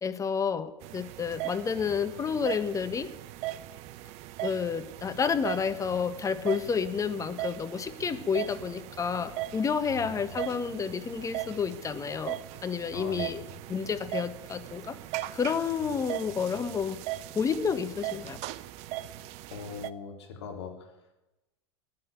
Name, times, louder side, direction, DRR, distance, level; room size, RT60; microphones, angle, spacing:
voice 1, 0.0-3.1 4.4-13.4 13.7-15.0 15.3-17.0 17.3-18.4, left 6 dB, 20° left, 10 dB, 1.4 m, -30 dB
sound 1, 0.8-19.9, right 15 dB, 50° right, 0.8 m, -39 dB
voice 2, 9.8-10.4 12.9-13.6 19.5-21.2, left 5 dB, 70° left, 3 dB, 3.9 m, -42 dB
15.0 x 10.5 x 9.3 m, 0.99 s
hypercardioid pair, 90°, 14 cm